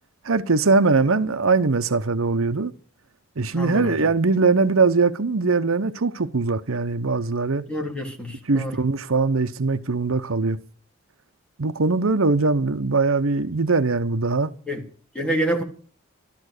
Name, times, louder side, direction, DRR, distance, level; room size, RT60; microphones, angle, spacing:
voice 1, 0.2-2.7 3.4-7.6 8.5-10.6 11.6-14.5, right 3 dB, 85° right, 0.9 m, -21 dB
voice 2, 3.5-4.0 7.7-8.7 14.7-14.8 15.1-15.6, right 1 dB, 5° left, 3.6 m, -27 dB
13.5 x 13.0 x 6.6 m
head